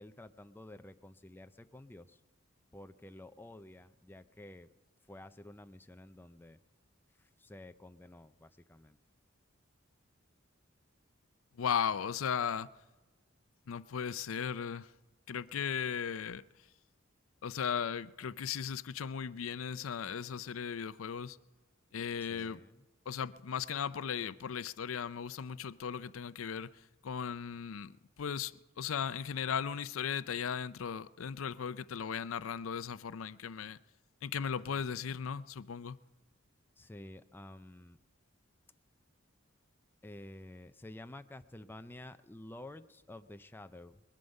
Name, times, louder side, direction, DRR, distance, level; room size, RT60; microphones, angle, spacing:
voice 1, 0.0-2.2 2.7-4.7 5.1-6.6 7.2-9.0 22.2-22.8 36.8-38.0 40.0-44.0, left 1 dB, 10° left, 0.5 m, -51 dB
voice 2, 11.5-12.7 13.7-14.9 15.3-16.4 17.4-21.4 21.9-22.6 23.1-26.7 27.0-33.8 34.2-36.0, left 7 dB, 80° left, 0.5 m, -37 dB
21.0 x 11.5 x 5.3 m
head